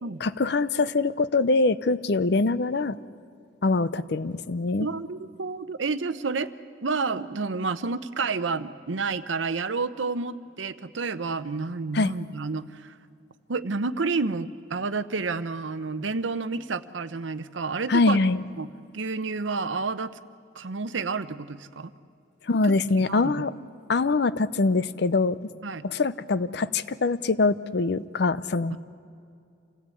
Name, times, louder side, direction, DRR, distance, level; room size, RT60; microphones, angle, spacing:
voice 1, 0.2-3.0 3.6-4.9 11.9-12.1 17.9-18.4 22.5-23.5 23.9-25.5 25.8-28.8, left 3 dB, 60° left, 15 dB, 0.6 m, -24 dB
voice 2, 4.8-6.5 6.8-13.0 13.5-18.2 18.6-20.2 20.5-21.9 22.6-22.7 23.1-23.4 25.6-25.9 28.7-28.8, right 4 dB, 85° right, 13 dB, 0.8 m, -30 dB
27.5 x 17.0 x 8.4 m, 2.4 s
head